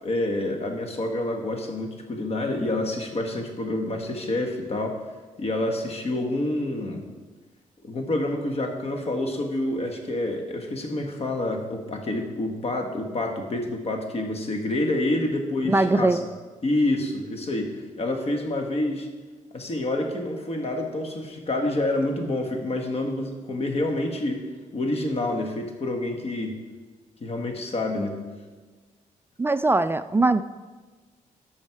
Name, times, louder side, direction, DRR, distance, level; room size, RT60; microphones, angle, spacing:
voice 1, 0.0-4.9 5.4-7.0 7.8-16.2 16.6-19.1 19.5-24.5 24.7-26.6 27.2-28.2, left 1 dB, 45° left, 4 dB, 1.7 m, -28 dB
voice 2, 15.7-16.2 29.4-30.4, right 2 dB, 15° right, 13 dB, 0.3 m, -21 dB
12.0 x 6.3 x 4.8 m, 1.4 s
cardioid pair, 100°, 14 cm